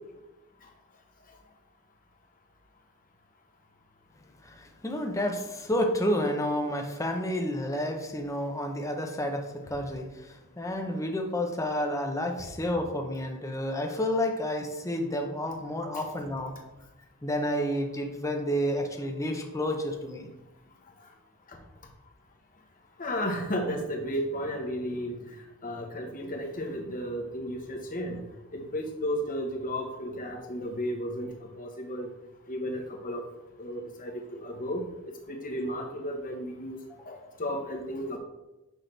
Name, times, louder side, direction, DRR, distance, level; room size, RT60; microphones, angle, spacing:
voice 1, 4.4-16.5 17.2-20.3, left 1 dB, 15° left, 3 dB, 0.7 m, -30 dB
voice 2, 23.0-25.2 25.6-28.2 28.5-31.3 31.6-32.1 32.5-33.2 33.6-34.8 35.3-36.8 37.1-38.2, equal, 40° left, 2 dB, 1.2 m, -33 dB
6.4 x 6.1 x 3.3 m, 0.99 s
head